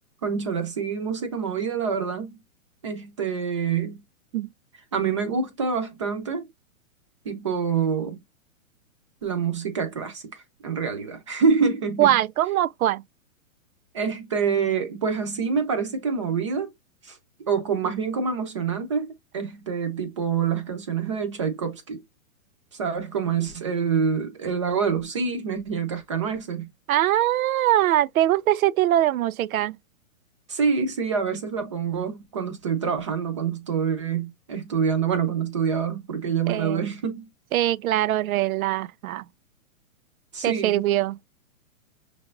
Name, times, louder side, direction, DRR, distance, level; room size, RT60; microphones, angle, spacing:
voice 1, 0.2-2.4 2.8-4.0 4.9-6.4 7.2-8.2 9.2-12.1 13.9-16.7 17.0-17.2 17.5-22.0 22.7-26.7 30.5-37.3 40.3-40.8, right 6 dB, 20° right, 0.6 m, -26 dB
voice 2, 12.0-13.0 26.9-29.8 36.5-36.9 37.5-39.3 40.4-41.2, right 13 dB, 80° right, 0.5 m, -22 dB
6.0 x 3.3 x 2.4 m
hypercardioid pair, 180°, 42 cm